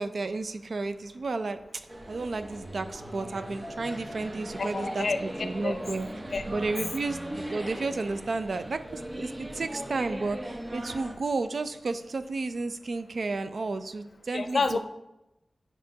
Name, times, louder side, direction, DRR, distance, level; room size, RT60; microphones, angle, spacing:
voice 1, 0.0-1.8 2.1-6.1 6.5-14.8, right 3 dB, 75° right, 10 dB, 0.4 m, -32 dB
sound 1, 1.9-11.1, right 1 dB, 45° right, 1.0 m, -39 dB
voice 2, 4.6-5.2 5.6-5.8 6.3-6.4 14.3-14.8, left 4 dB, 75° left, 8 dB, 0.5 m, -28 dB
8.8 x 4.8 x 2.8 m, 0.92 s
cardioid pair, 45°, 0 cm